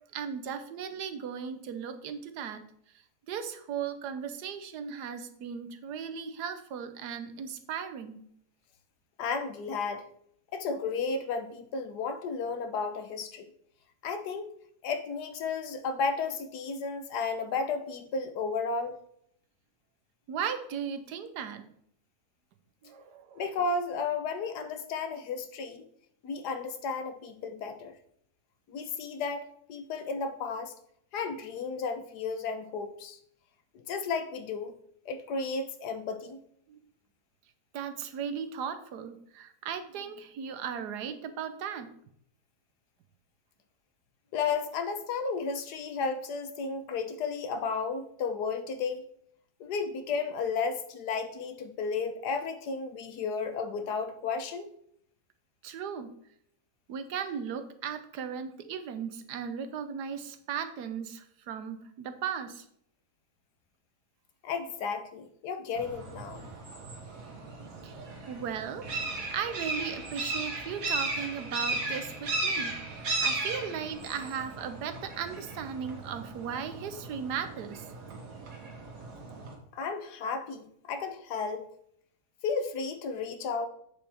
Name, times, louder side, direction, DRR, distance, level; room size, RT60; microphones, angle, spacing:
voice 1, 0.1-2.6 3.3-8.2 20.3-21.6 22.8-23.4 36.7-36.8 37.7-41.9 55.6-56.1 56.9-62.7 67.8-77.9, right 7 dB, 90° right, 9 dB, 1.4 m, -37 dB
voice 2, 9.2-10.1 10.5-13.5 14.0-14.5 14.8-19.0 23.4-25.8 26.2-27.9 28.7-30.7 31.1-33.2 33.9-34.7 35.0-36.4 44.3-49.0 49.6-54.7 64.4-66.5 79.7-81.7 82.4-83.7, left 4 dB, 80° left, 8 dB, 1.4 m, -33 dB
sound 1, 65.8-79.5, right 2 dB, 60° right, 1.9 m, -36 dB
7.9 x 7.0 x 3.4 m, 0.68 s
omnidirectional pair, 1.7 m